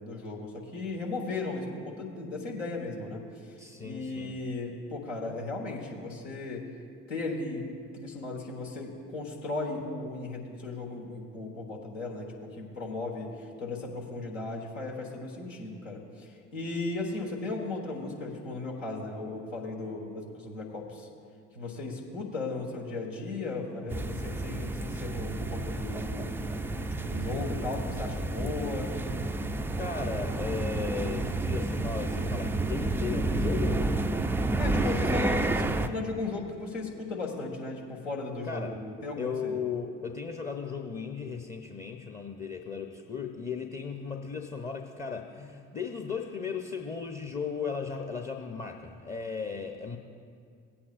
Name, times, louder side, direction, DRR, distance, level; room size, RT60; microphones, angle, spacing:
voice 1, 0.0-3.5 3.8-6.7 7.1-7.7 7.9-13.3 13.6-21.1 21.5-26.3 27.0-28.9 34.6-39.6, left 3 dB, 80° left, -1 dB, 1.5 m, -36 dB
voice 2, 3.6-4.4 29.8-33.9 34.8-35.1 38.4-38.8 39.2-50.0, left 5 dB, 20° left, 4 dB, 0.8 m, -36 dB
sound 1, 23.9-35.9, right 2 dB, 5° right, 0.3 m, -30 dB
17.5 x 8.6 x 2.5 m, 2.3 s
figure-of-eight pair, 55°, 38 cm